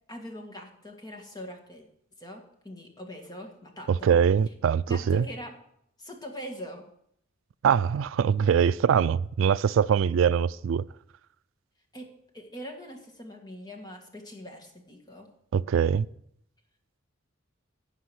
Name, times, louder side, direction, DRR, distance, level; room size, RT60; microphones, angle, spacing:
voice 1, 0.1-1.9 2.2-4.2 4.9-5.5 6.0-6.9 11.9-15.3, equal, 20° left, 1.8 m, -42 dB
voice 2, 3.9-5.2 7.6-10.8 15.5-16.1, right 7 dB, 80° right, 0.3 m, -23 dB
15.5 x 5.4 x 6.3 m
head